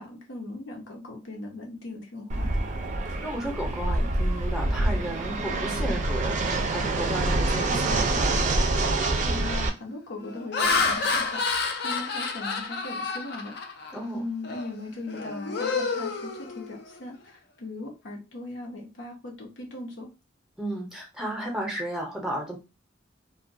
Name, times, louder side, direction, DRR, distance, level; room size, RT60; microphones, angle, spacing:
voice 1, 0.0-2.5 9.2-13.6 14.1-20.1, left 2 dB, 85° left, 1 dB, 0.8 m, -39 dB
Fixed-wing aircraft airplane, 2.3-9.7, right 2 dB, 40° right, 0.4 m, -26 dB
voice 2, 3.2-8.4 13.9-14.2 20.6-22.6, right 1 dB, 5° right, -1 dB, 0.6 m, -33 dB
Laughter, 8.7-8.8 9.3-9.6 10.2-14.0 14.4-14.7 15.1-17.0, left 4 dB, 60° left, 0.4 m, -29 dB
2.3 x 2.1 x 2.6 m, 0.27 s
head